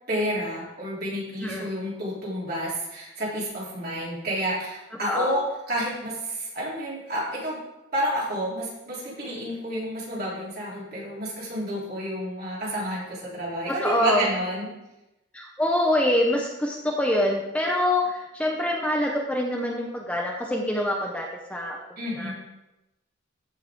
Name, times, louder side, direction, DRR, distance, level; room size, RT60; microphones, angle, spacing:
voice 1, 0.1-7.6 7.9-14.7 22.0-22.3, right 1 dB, 50° right, -6 dB, 3.8 m, -30 dB
voice 2, 13.7-14.2 15.3-21.8 22.2-22.3, left 1 dB, 5° left, -1 dB, 0.9 m, -25 dB
14.5 x 5.6 x 3.9 m, 0.94 s
head